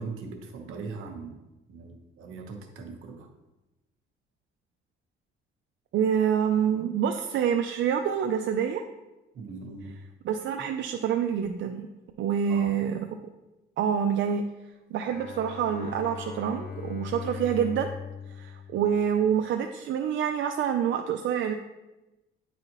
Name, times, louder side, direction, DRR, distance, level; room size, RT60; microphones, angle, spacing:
voice 1, 0.0-1.4 1.7-3.3 9.3-10.0 12.5-12.8, right 4 dB, 80° right, 3 dB, 1.1 m, -40 dB
voice 2, 5.9-8.8 10.2-11.9 12.2-13.1 13.8-14.4 14.9-17.9 18.4-21.5, right 8 dB, 65° right, 5 dB, 0.5 m, -27 dB
Bowed string instrument, 15.0-19.5, left 6 dB, 45° left, 0.9 m, -40 dB
9.6 x 4.2 x 3.0 m, 1.0 s
cardioid pair, 95°, 21 cm